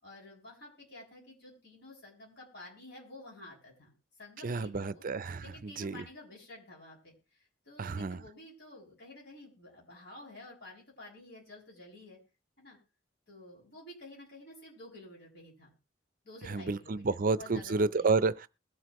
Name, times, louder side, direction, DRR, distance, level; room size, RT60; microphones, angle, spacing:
voice 1, 0.0-5.0 5.4-12.2 12.6-12.8 13.3-15.7 16.2-18.1, left 1 dB, 60° left, 6.9 m, -51 dB
voice 2, 4.4-6.0 7.8-8.2 16.5-18.5, right 3 dB, 45° right, 0.5 m, -30 dB
21.5 x 7.8 x 3.0 m
head